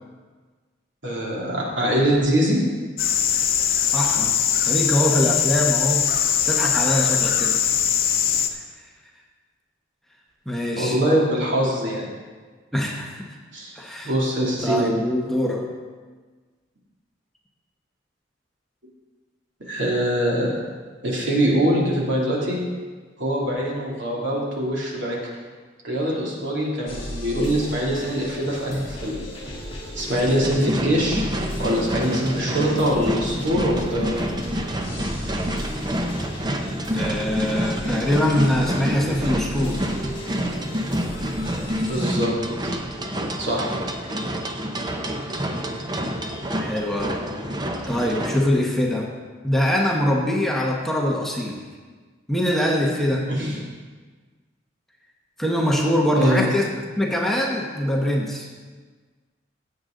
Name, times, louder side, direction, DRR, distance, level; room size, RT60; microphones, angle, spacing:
voice 1, 1.0-2.6 10.8-12.1 13.5-13.7 14.0-14.9 19.6-20.6 21.0-22.6 23.2-25.2 25.8-29.1 29.9-31.2 31.6-34.3 41.6-42.3 43.4-43.7 53.3-53.6 56.2-56.5, equal, 70° right, -4 dB, 2.9 m, -23 dB
sound 1, 3.0-8.5, left 9 dB, 50° left, 0.7 m, -21 dB
voice 2, 3.9-4.3 4.6-6.1 6.4-7.7 8.5-8.6 10.5-11.0 12.7-13.3 13.7-14.1 14.6-15.7 36.9-39.9 46.6-47.3 47.9-49.1 49.4-51.6 52.3-53.3 55.4-58.5, equal, ahead, -2 dB, 1.1 m, -23 dB
sound 2, 26.9-42.1, left 1 dB, 30° left, 2.7 m, -35 dB
sound 3, 30.4-48.4, equal, 20° right, 0.8 m, -28 dB
16.0 x 7.9 x 3.9 m, 1.4 s
head